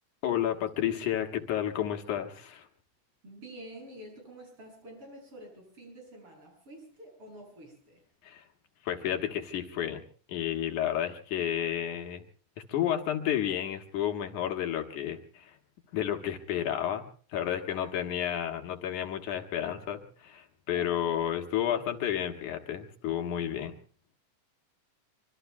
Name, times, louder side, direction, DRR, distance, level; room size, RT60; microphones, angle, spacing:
voice 1, 0.2-2.7 8.2-8.4 8.8-10.0 10.3-12.2 12.7-15.6 15.9-17.1 17.3-23.8, left 10 dB, 75° left, 4 dB, 2.7 m, -31 dB
voice 2, 3.2-8.0 17.7-18.2 20.7-21.1, right 1 dB, 45° right, 0 dB, 9.0 m, -48 dB
25.5 x 24.5 x 2.3 m, 0.42 s
omnidirectional pair, 3.6 m